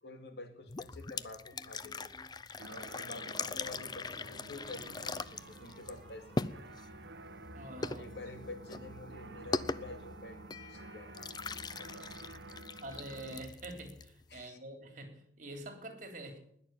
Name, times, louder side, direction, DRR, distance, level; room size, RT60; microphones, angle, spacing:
voice 1, 0.0-2.1 2.7-6.8 8.0-12.7 14.3-14.6, left 2 dB, 70° left, 6 dB, 2.6 m, -49 dB
sound 1, 0.7-14.4, left 3 dB, 25° left, 0.5 m, -41 dB
sound 2, 1.5-2.4 4.3-7.9, right 2 dB, 5° left, 5.5 m, -60 dB
sound 3, 2.6-13.4, right 2 dB, 80° right, 1.0 m, -51 dB
voice 2, 7.5-8.1 12.8-16.4, right 1 dB, 50° right, 5 dB, 3.5 m, -46 dB
20.0 x 6.9 x 9.4 m, 0.70 s
head